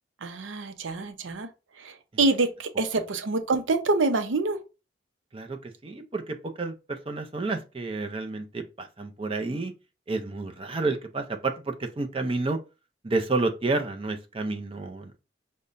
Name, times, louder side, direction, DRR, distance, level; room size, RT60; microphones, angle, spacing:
voice 1, 0.2-1.5 1.8-4.6, right 3 dB, 85° right, 0.6 m, -26 dB
voice 2, 5.3-9.7 10.1-12.6 13.0-15.1, right 3 dB, 30° right, 0.5 m, -30 dB
5.3 x 2.2 x 2.5 m
head